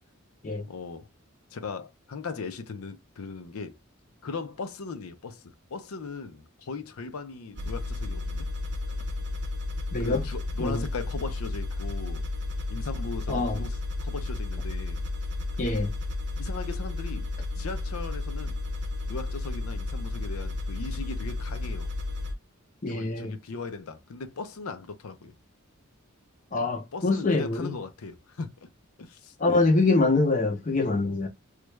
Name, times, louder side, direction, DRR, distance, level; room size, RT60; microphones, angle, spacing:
voice 1, 0.7-1.1 1.5-3.8 4.2-8.5 10.0-12.2 12.7-15.0 16.4-17.3 17.6-18.6 19.1-21.9 22.9-25.3 26.9-28.7 29.0-29.7, left 4 dB, 85° left, 0.6 m, -38 dB
sound 1, 7.6-22.3, left 2 dB, 55° right, 0.6 m, -32 dB
voice 2, 9.9-10.3 10.6-10.9 13.3-13.6 15.6-15.9 22.8-23.3 26.5-27.8 29.4-31.3, left 3 dB, 35° left, 0.5 m, -25 dB
3.2 x 2.3 x 3.1 m
head